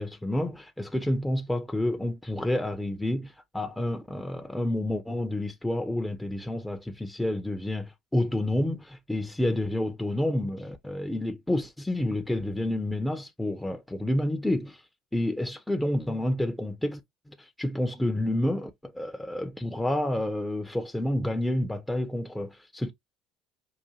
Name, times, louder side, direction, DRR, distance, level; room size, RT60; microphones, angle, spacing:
voice 1, 0.0-14.8 15.1-17.0 17.3-22.9, left 1 dB, 5° left, 0.7 m, -29 dB
4.9 x 2.5 x 2.7 m
hypercardioid pair, 70°, 0 cm